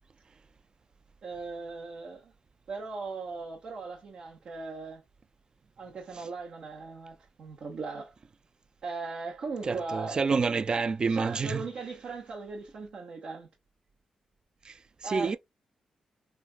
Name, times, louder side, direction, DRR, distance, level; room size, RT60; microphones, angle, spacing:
voice 1, 1.2-2.3 2.7-5.0 5.8-8.1 8.8-10.2 11.1-13.5 15.0-15.4, right 4 dB, 70° right, 1.0 m, -38 dB
voice 2, 9.6-11.6 14.7-15.4, right 4 dB, 40° right, 0.3 m, -28 dB
3.3 x 2.4 x 2.3 m
cardioid pair, 70°, 2 cm